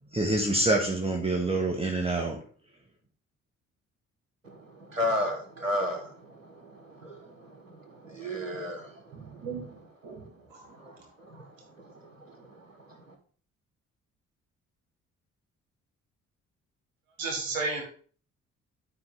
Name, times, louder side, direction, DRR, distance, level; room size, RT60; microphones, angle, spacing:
voice 1, 0.1-2.4, right 2 dB, 15° right, 1 dB, 1.6 m, -26 dB
voice 2, 4.4-9.5 10.7-11.5 11.8-11.9 12.2-12.6, left 1 dB, 90° right, 5 dB, 1.0 m, -35 dB
voice 3, 9.1-9.8 10.0-10.2 10.5-10.7 17.2-17.8, right 3 dB, 65° right, 2 dB, 2.0 m, -34 dB
12.0 x 4.7 x 3.6 m, 0.44 s
figure-of-eight pair, 40°, 38 cm